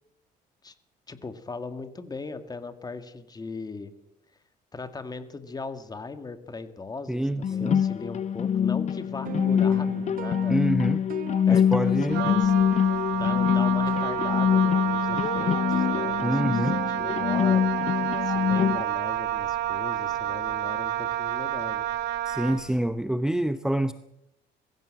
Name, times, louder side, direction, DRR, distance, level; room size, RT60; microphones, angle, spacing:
voice 1, 1.1-3.9 4.7-10.6 11.5-12.5 13.1-17.7 18.2-21.9, left 3 dB, 25° left, 9 dB, 2.2 m, -38 dB
voice 2, 7.1-7.8 10.5-11.0 11.5-12.3 16.2-16.8 22.3-23.9, right 1 dB, 5° right, 11 dB, 0.8 m, -26 dB
sound 1, 7.4-18.8, left 8 dB, 45° left, 0.6 m, -24 dB
sound 2, 9.2-15.0 15.3-17.1, right 9 dB, 55° right, 1.5 m, -41 dB
Wind instrument woodwind instrument, 12.1-22.7, right 11 dB, 85° right, 2.2 m, -29 dB
22.5 x 15.5 x 7.7 m, 0.85 s
cardioid pair, 110°, 17 cm